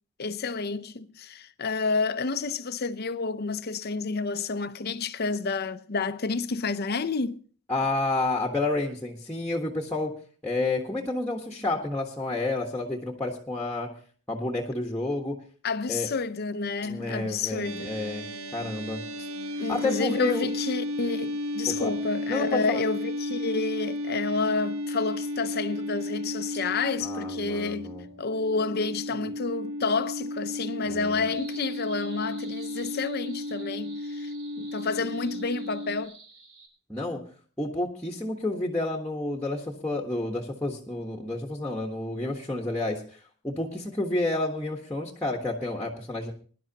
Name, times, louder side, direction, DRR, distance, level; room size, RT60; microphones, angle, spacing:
voice 1, 0.2-7.4 15.6-17.9 19.6-27.9 28.2-36.2, left 4 dB, 50° left, 0.6 m, -30 dB
voice 2, 7.7-10.1 10.4-13.9 14.3-15.4 15.9-16.1 16.8-18.3 18.5-19.3 19.7-20.5 21.7-21.9 22.3-22.8 27.0-28.1 29.1-29.3 30.9-31.2 36.9-37.2 37.6-46.3, left 2 dB, 5° left, 1.4 m, -30 dB
sound 1, 16.6-22.5 23.0-23.2 23.5-23.8, right 1 dB, 40° right, 5.1 m, -52 dB
sound 2, 17.6-36.1, left 1 dB, 90° right, 1.1 m, -34 dB
sound 3, 31.2-36.7, right 4 dB, 65° right, 3.4 m, -50 dB
21.5 x 11.0 x 2.9 m
head